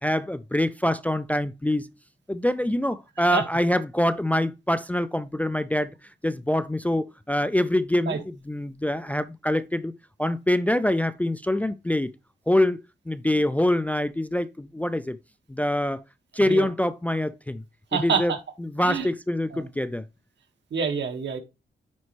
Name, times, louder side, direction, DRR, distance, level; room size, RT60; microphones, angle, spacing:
voice 1, 0.0-1.9 2.3-5.9 6.2-9.9 10.2-12.1 12.5-12.8 13.1-15.2 15.5-16.0 16.3-17.6 17.9-18.3 18.6-20.0, left 1 dB, 10° left, 0.3 m, -25 dB
voice 2, 17.9-18.4 18.8-19.1 19.5-19.7 20.7-21.4, right 5 dB, 75° right, 1.8 m, -27 dB
9.5 x 4.2 x 3.2 m
wide cardioid pair, 155°, 18 cm